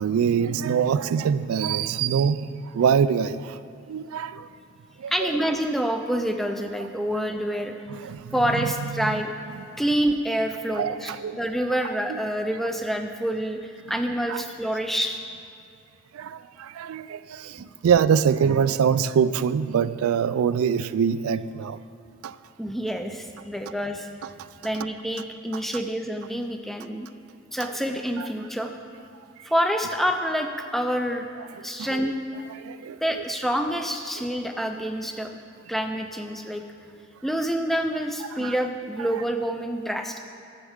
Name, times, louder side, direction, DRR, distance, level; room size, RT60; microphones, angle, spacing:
voice 1, 0.0-3.6 3.9-4.5 5.0-5.3 7.9-8.3 9.0-9.1 10.8-11.4 12.1-12.2 14.3-14.4 16.1-21.8 22.2-22.3 28.2-28.3 31.8-32.0 32.6-33.0 38.4-38.5, right 7 dB, 90° right, 0.3 m, -24 dB
voice 2, 5.1-7.7 8.3-9.3 9.8-11.1 11.4-15.4 22.6-24.1 24.6-27.1 27.5-28.7 29.4-31.3 31.6-32.1 33.0-35.3 35.7-36.6 37.2-40.2, equal, ahead, 0.4 m, -27 dB
13.0 x 7.3 x 3.6 m
head